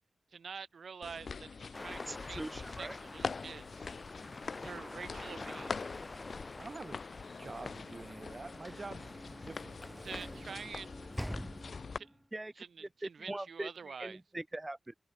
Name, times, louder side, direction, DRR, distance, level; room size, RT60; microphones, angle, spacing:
voice 1, 0.3-2.5 2.8-3.9 4.6-5.8 10.0-11.0 12.0-12.1 12.6-14.2, right 5 dB, 80° right, 1.7 m, -47 dB
sound 1, 1.0-12.0, left 5 dB, 65° left, 1.4 m, -44 dB
sound 2, 1.7-10.2, left 2 dB, 35° left, 2.5 m, -48 dB
voice 2, 2.1-3.0 12.3-12.6 13.0-14.9, right 1 dB, 25° right, 2.0 m, -42 dB
voice 3, 6.6-7.0 7.4-10.8, right 3 dB, 45° right, 1.8 m, -48 dB
Sliding door / Slam, 7.6-12.2, equal, ahead, 1.4 m, -46 dB
cardioid pair, 60°, 0 cm